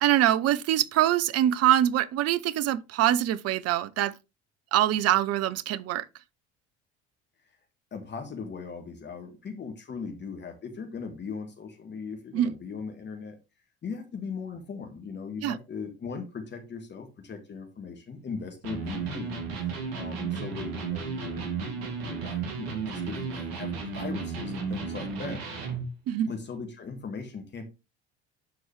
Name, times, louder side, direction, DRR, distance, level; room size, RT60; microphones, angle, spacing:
voice 1, 0.0-4.1 4.7-6.0 12.3-12.5 15.4-15.6 26.1-26.3, right 12 dB, 50° right, 0.7 m, -24 dB
voice 2, 7.9-13.4 13.8-25.4 26.3-27.7, left 5 dB, 35° left, 1.8 m, -39 dB
Electric guitar, 18.6-25.9, right 5 dB, 70° right, 2.1 m, -33 dB
12.0 x 4.6 x 3.2 m
hypercardioid pair, 65°, 33 cm